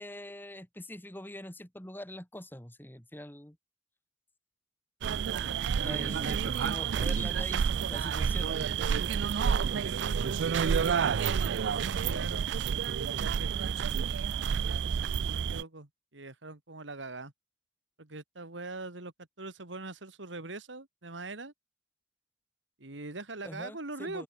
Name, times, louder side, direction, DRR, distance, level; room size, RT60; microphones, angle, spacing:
voice 1, 0.0-3.6 5.8-8.7 23.4-24.2, left 1 dB, 10° left, 3.2 m, -43 dB
sound 1, 5.0-15.6, right 7 dB, 70° right, 0.4 m, -29 dB
voice 2, 5.7-6.3 9.1-12.5 13.2-13.9 14.5-17.3 18.0-21.5 22.8-24.2, right 2 dB, 85° right, 2.5 m, -43 dB
head